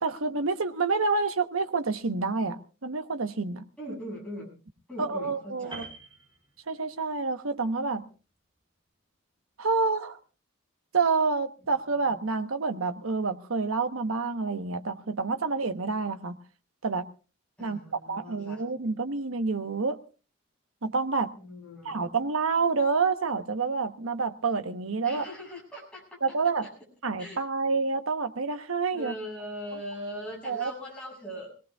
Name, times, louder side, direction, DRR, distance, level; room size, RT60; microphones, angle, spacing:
voice 1, 0.0-4.0 5.0-5.9 6.7-8.1 9.6-10.2 10.9-16.4 16.8-17.0 17.6-20.0 20.8-21.3 21.8-25.2 26.2-26.7 27.0-29.1 30.4-30.7, right 4 dB, 90° right, 8 dB, 1.0 m, -28 dB
voice 2, 3.8-4.5 4.9-5.9 12.0-12.2 17.6-18.6 21.4-22.0 25.0-26.2 27.2-27.4 28.9-31.5, equal, 5° left, -3 dB, 7.2 m, -40 dB
Piano, 5.7-7.1 7.4-7.7, right 3 dB, 20° right, 6.4 m, -45 dB
25.0 x 18.0 x 2.3 m, 0.35 s
head